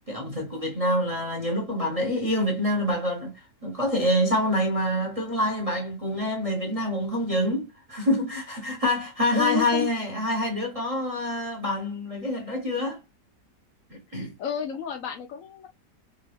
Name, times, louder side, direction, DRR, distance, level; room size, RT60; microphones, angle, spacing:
voice 1, 0.1-13.0 13.9-14.3, left 1 dB, 25° right, 0.9 m, -26 dB
voice 2, 9.3-9.9 14.4-15.7, left 9 dB, 65° left, 0.9 m, -30 dB
3.7 x 2.7 x 3.3 m
omnidirectional pair, 1.8 m